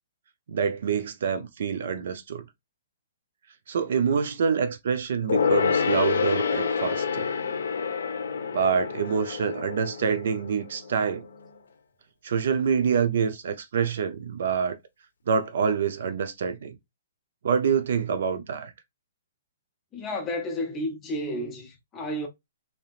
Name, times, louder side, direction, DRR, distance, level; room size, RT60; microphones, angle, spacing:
voice 1, 0.5-2.5 3.7-7.3 8.5-11.3 12.2-14.8 15.3-16.8 17.4-18.7, right 6 dB, 55° right, 0.5 m, -26 dB
Gong, 5.3-11.2 11.5-11.6, left 6 dB, 80° left, 0.9 m, -27 dB
voice 2, 19.9-22.3, left 1 dB, 15° left, 0.5 m, -31 dB
3.4 x 2.8 x 2.3 m
hypercardioid pair, 170°, 0 cm